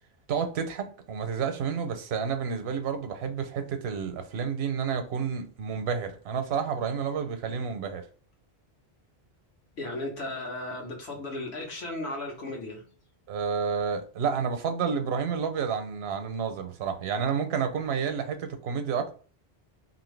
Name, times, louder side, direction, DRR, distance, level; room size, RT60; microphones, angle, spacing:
voice 1, 0.3-8.0 13.3-19.1, right 6 dB, 80° right, 0.8 m, -30 dB
voice 2, 9.8-12.8, left 2 dB, 80° left, 1.3 m, -35 dB
2.8 x 2.6 x 3.2 m
omnidirectional pair, 1.1 m